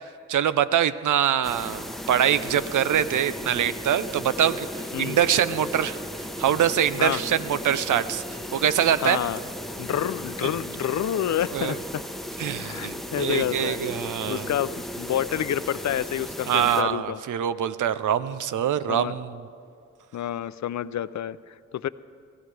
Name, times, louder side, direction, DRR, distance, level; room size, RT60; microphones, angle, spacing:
voice 1, 0.3-6.0 6.4-8.2 8.5-9.2 11.5-11.8 12.4-14.5 16.5-19.4, right 9 dB, 85° right, 14 dB, 0.6 m, -24 dB
sound 1, 1.4-16.8, equal, ahead, 1.0 m, -36 dB
voice 2, 9.0-9.4 9.8-12.0 12.6-13.8 14.3-17.2 18.9-19.1 20.1-21.9, left 10 dB, 70° left, 16 dB, 0.5 m, -28 dB
23.0 x 16.0 x 3.4 m, 2.5 s
cardioid pair, 60°, 30 cm